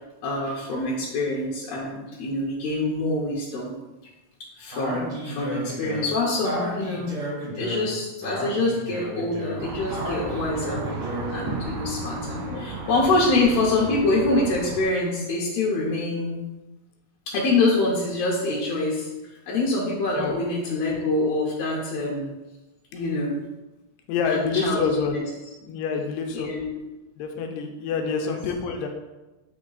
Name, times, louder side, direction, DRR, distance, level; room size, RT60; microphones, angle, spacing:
voice 1, 0.2-3.7 4.6-7.2 7.6-10.8 11.3-16.4 17.3-19.1 19.5-22.3 22.9-23.4 24.3-24.9 26.3-26.6 28.0-28.3, left 2 dB, 70° left, -4 dB, 1.6 m, -25 dB
Speech, 4.7-11.5, equal, 45° right, 2.0 m, -33 dB
sound 1, 9.6-14.8, right 3 dB, 70° right, 2.0 m, -34 dB
voice 2, 12.1-12.7 20.1-20.4 24.1-25.2 25.6-26.5 27.2-28.9, left 5 dB, 85° left, 3 dB, 2.3 m, -27 dB
8.0 x 3.2 x 3.9 m, 1.1 s
omnidirectional pair, 3.9 m